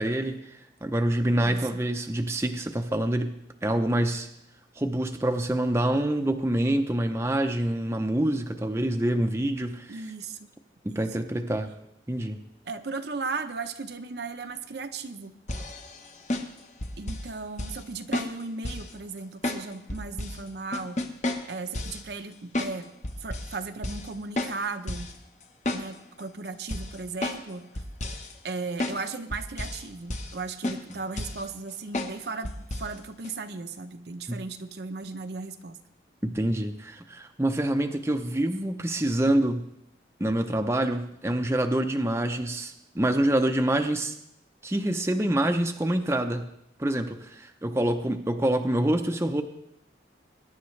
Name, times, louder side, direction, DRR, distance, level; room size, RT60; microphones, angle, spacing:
voice 1, 0.0-4.3 4.8-10.0 10.8-11.7 12.1-12.4 34.3-34.4 36.2-39.6 40.2-44.1 44.6-46.5 46.8-49.4, right 1 dB, 15° right, 5 dB, 0.6 m, -26 dB
voice 2, 1.4-1.8 9.9-10.4 10.9-11.1 12.7-15.3 17.0-21.0 21.5-22.9 23.2-25.1 25.7-27.7 28.4-32.5 32.8-35.8, right 4 dB, 65° right, 7 dB, 0.8 m, -36 dB
sound 1, 15.5-17.3 17.6-17.8 18.1-18.9 19.4-20.4 20.7-22.0 22.5-22.8 23.0-23.6 23.8-24.1 24.4-25.1 25.4-26.2 26.7-27.5 27.8-28.3 28.8-29.0 29.3-29.9 30.1-30.4 30.6-31.5 31.9-32.2 32.4-32.9 33.2-33.3, left 1 dB, 40° left, 1.0 m, -32 dB
21.5 x 10.5 x 3.2 m, 0.77 s
head